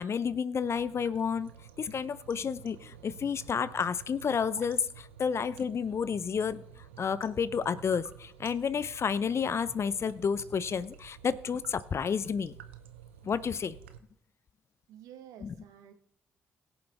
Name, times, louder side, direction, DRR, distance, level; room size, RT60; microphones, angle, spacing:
voice 1, 0.0-1.5 1.8-6.6 7.0-12.5 13.2-13.8 15.4-15.5, left 6 dB, 45° left, 17 dB, 0.6 m, -31 dB
sound 1, 0.6-14.0, right 9 dB, 85° right, 0.6 m, -51 dB
voice 2, 14.9-15.9, right 10 dB, 70° right, 8 dB, 1.1 m, -50 dB
21.0 x 7.1 x 3.4 m, 0.72 s
hypercardioid pair, 45°, 6 cm